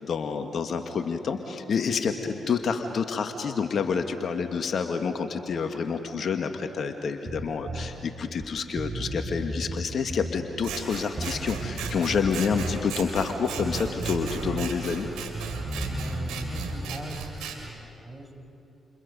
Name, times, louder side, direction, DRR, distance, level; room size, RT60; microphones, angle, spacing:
voice 1, 0.0-15.1, left 5 dB, 60° left, 6 dB, 1.6 m, -28 dB
Bass guitar, 7.3-7.9 8.4-8.5 8.8-10.4 11.2-12.8 13.6-14.7 15.0-16.8, right 2 dB, 40° right, 3.9 m, -34 dB
Scissors, 10.6-17.6, right 6 dB, 80° right, 3.4 m, -37 dB
voice 2, 15.8-18.3, right 1 dB, 10° right, 3 dB, 5.9 m, -40 dB
29.5 x 29.5 x 5.3 m, 2.8 s
hypercardioid pair, 40°, 0 cm